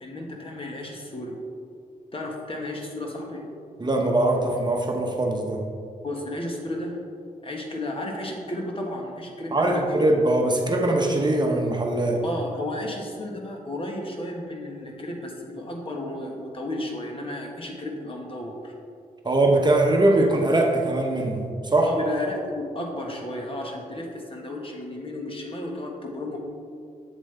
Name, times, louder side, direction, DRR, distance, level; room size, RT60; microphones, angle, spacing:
voice 1, 0.0-1.4 2.1-3.5 6.0-7.0 7.4-9.8 12.2-18.7 21.8-26.4, left 1 dB, 40° left, 0 dB, 1.5 m, -33 dB
voice 2, 3.8-5.6 9.5-12.2 19.2-21.4 21.7-21.9, right 2 dB, 30° right, 1 dB, 0.9 m, -21 dB
7.5 x 7.4 x 3.4 m, 2.4 s
cardioid pair, 65°, 15 cm